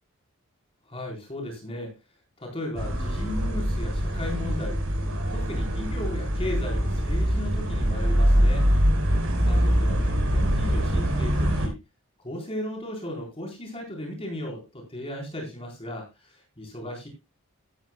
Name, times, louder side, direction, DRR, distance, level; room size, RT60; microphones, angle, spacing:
voice 1, 0.9-2.0 2.4-4.8 5.3-8.7 9.5-11.8 12.2-17.1, left 1 dB, 25° left, 1 dB, 3.9 m, -36 dB
sound 1, 2.7-11.7, equal, 65° right, 4.4 m, -24 dB
15.0 x 12.5 x 2.2 m, 0.25 s
head